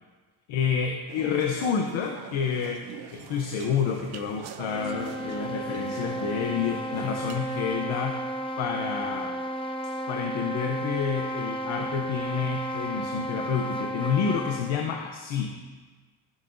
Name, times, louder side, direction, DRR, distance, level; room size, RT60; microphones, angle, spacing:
voice 1, 0.5-9.4 10.1-15.6, left 7 dB, 85° left, 2 dB, 1.0 m, -29 dB
sound 1, 1.1-7.4, right 10 dB, 55° right, 0.6 m, -43 dB
sound 2, 4.5-14.8, right 1 dB, 15° left, 0.4 m, -33 dB
14.0 x 7.3 x 2.7 m, 1.4 s
cardioid pair, 150°, 46 cm